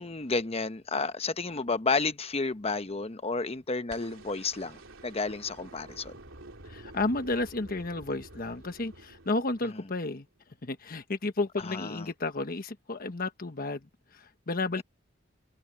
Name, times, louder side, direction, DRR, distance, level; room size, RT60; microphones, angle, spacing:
voice 1, 0.0-6.1 11.7-12.1, left 4 dB, 30° left, 0.9 m, -31 dB
sound 1, 3.9-10.1 11.6-11.7, right 2 dB, 90° right, 3.4 m, -49 dB
voice 2, 6.7-10.2 10.6-13.9 14.1-14.8, left 2 dB, 50° left, 1.2 m, -32 dB
head